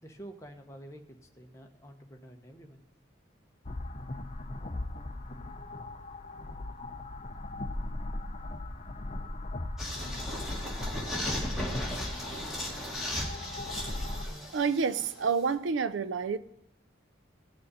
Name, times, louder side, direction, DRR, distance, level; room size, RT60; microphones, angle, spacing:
voice 1, 0.0-2.8, right 1 dB, 15° left, 1.1 m, -50 dB
sound 1, 3.6-14.3, left 2 dB, 30° left, 0.6 m, -38 dB
sound 2, 9.8-15.5, left 1 dB, ahead, 2.2 m, -36 dB
voice 2, 14.5-16.4, right 5 dB, 75° right, 0.5 m, -28 dB
18.0 x 6.4 x 4.1 m
head